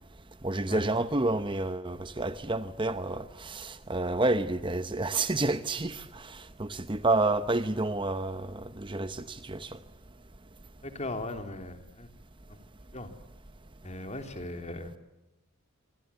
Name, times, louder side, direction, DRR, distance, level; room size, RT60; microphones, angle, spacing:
voice 1, 0.4-9.8, right 2 dB, 20° right, 0.9 m, -29 dB
voice 2, 10.8-12.1 12.9-13.1 13.8-15.0, left 2 dB, 30° left, 3.2 m, -38 dB
25.5 x 25.5 x 8.4 m
head